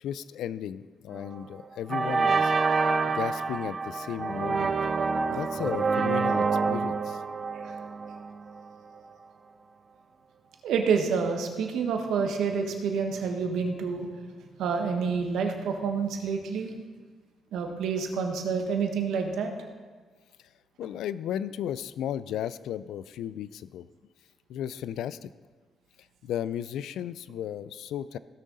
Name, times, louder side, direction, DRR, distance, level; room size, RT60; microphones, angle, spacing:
voice 1, 0.0-2.5 3.1-4.8 5.3-7.2 20.8-23.9 24.5-25.3 26.2-28.2, left 10 dB, 80° left, 16 dB, 0.3 m, -34 dB
sound 1, 1.1-1.4 1.9-8.7, right 4 dB, 40° right, 0.5 m, -27 dB
voice 2, 10.6-14.1 14.6-16.7 17.5-19.5, right 5 dB, 80° right, 4 dB, 1.3 m, -28 dB
16.5 x 6.3 x 4.0 m, 1.4 s
cardioid pair, 90°, 0 cm